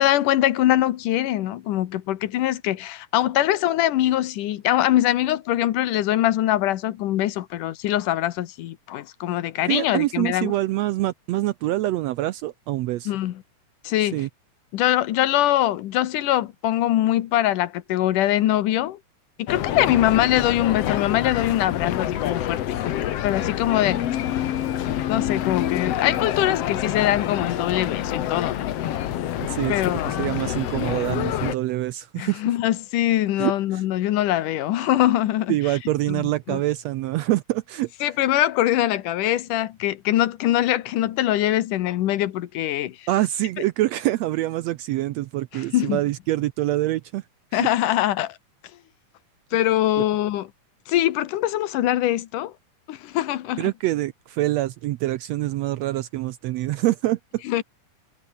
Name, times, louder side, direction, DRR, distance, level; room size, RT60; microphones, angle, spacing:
voice 1, 0.0-10.5 13.1-13.4 13.8-14.2 14.7-19.0 19.4-22.8 23.2-24.0 25.1-29.1 29.7-30.2 32.2-35.6 36.1-36.6 38.0-43.1 45.5-46.0 47.5-48.4 49.5-50.5 50.9-52.5 52.9-53.7 57.5-57.6, left 13 dB, 90° left, 2.7 m, -23 dB
voice 2, 9.7-13.1 14.0-14.3 29.5-32.4 33.4-33.8 35.5-37.9 43.1-47.2 47.5-47.7 53.6-57.4, right 16 dB, 80° right, 1.6 m, -25 dB
sound 1, 19.5-31.6, left 11 dB, 60° left, 2.0 m, -27 dB
omnidirectional pair, 3.6 m